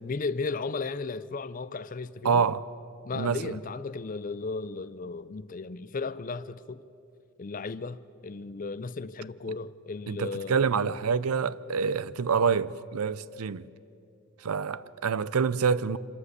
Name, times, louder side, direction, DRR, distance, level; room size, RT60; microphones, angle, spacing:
voice 1, 0.0-2.4 3.0-6.8 7.4-10.6, left 4 dB, 40° left, 0.4 m, -35 dB
voice 2, 2.2-2.6 3.1-3.6 10.1-13.7 14.4-16.0, right 6 dB, 90° right, 0.6 m, -27 dB
26.0 x 13.0 x 8.2 m
head